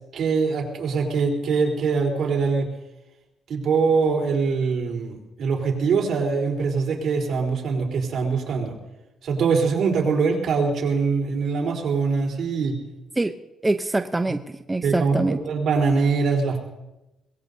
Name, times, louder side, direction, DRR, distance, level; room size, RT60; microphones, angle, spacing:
voice 1, 0.1-2.7 3.5-8.8 9.2-12.8 14.8-15.2 15.4-16.6, right 5 dB, 65° right, 0 dB, 3.9 m, -23 dB
voice 2, 13.6-15.4, right 2 dB, 15° right, 8 dB, 0.7 m, -24 dB
22.5 x 19.5 x 2.8 m, 0.99 s
cardioid pair, 90°, 0 cm